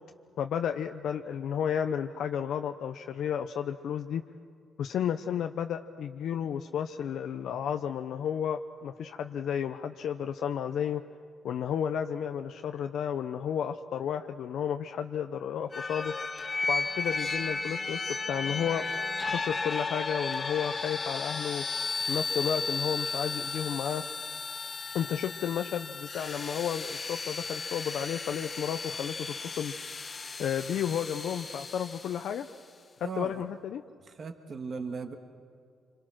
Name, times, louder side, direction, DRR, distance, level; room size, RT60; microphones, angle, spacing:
voice 1, 0.4-4.2 4.8-11.0 11.4-16.1 16.7-18.8 19.2-21.6 22.1-24.0 24.9-29.7 30.4-32.5 33.0-33.8, left 8 dB, 70° left, 6 dB, 0.7 m, -32 dB
sound 1, 15.7-32.4, left 4 dB, 30° left, 1.0 m, -34 dB
voice 2, 33.0-33.4 34.1-35.2, right 4 dB, 40° right, 6 dB, 1.6 m, -37 dB
26.5 x 26.0 x 6.3 m, 2.4 s
cardioid pair, 120°, 0 cm